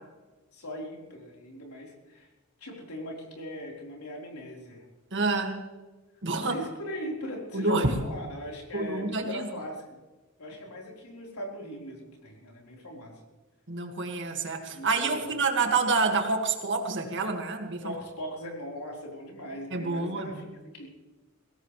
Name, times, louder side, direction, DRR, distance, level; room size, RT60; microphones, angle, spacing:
voice 1, 0.5-2.3 2.6-4.8 6.3-10.0 10.4-13.2 14.7-15.4 17.8-20.5 20.7-20.9, equal, 85° left, -1 dB, 4.2 m, -39 dB
voice 2, 5.1-5.6 6.2-6.5 7.5-7.9 8.7-9.4 13.7-17.8 19.7-20.3, right 3 dB, 55° right, 4 dB, 2.0 m, -28 dB
21.5 x 17.0 x 3.3 m, 1.2 s
head